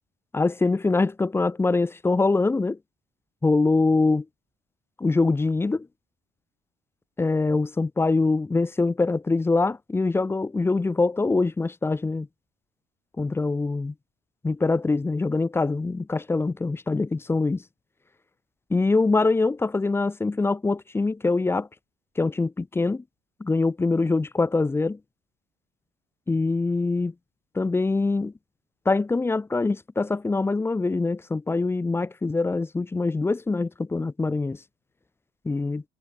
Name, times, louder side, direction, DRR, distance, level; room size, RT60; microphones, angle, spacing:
voice 1, 0.3-2.8 3.4-4.3 5.0-5.9 7.2-12.3 13.2-13.9 14.4-17.6 18.7-21.7 22.2-23.0 23.4-25.0 26.3-27.1 27.5-28.3 28.9-34.6 35.4-35.8, left 3 dB, 15° left, 0.6 m, -24 dB
cardioid pair, 110°, 17 cm